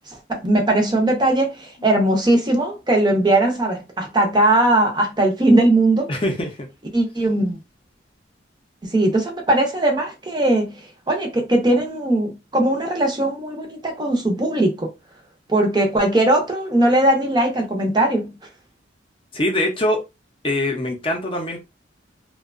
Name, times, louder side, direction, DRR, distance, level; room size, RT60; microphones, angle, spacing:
voice 1, 0.1-6.1 6.9-7.6 8.8-14.9 15.5-18.4, right 1 dB, 25° right, 0.5 m, -19 dB
voice 2, 6.1-6.7 19.3-20.0 20.4-21.6, left 1 dB, 30° left, 0.5 m, -23 dB
2.7 x 2.1 x 2.4 m
head